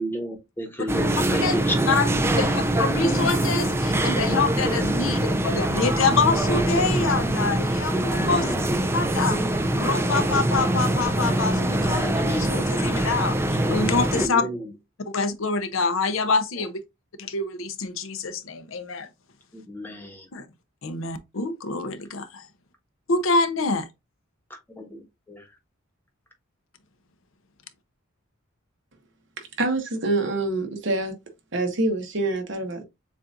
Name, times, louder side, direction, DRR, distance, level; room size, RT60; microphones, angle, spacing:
voice 1, 0.0-2.0 7.9-8.6 14.1-14.6 19.5-20.3 24.8-25.0 25.3-25.4, right 1 dB, 10° left, 1.0 m, -31 dB
sound 1, 0.9-14.3, right 1 dB, 10° right, 0.3 m, -23 dB
voice 2, 2.4-8.5 8.9-9.4 9.8-14.4 15.1-16.8 17.2-19.1 20.3-20.5 20.8-22.5 23.1-23.9, left 4 dB, 75° left, 0.7 m, -26 dB
voice 3, 29.6-31.1 31.5-32.8, right 2 dB, 60° right, 1.2 m, -25 dB
7.1 x 2.5 x 2.5 m
head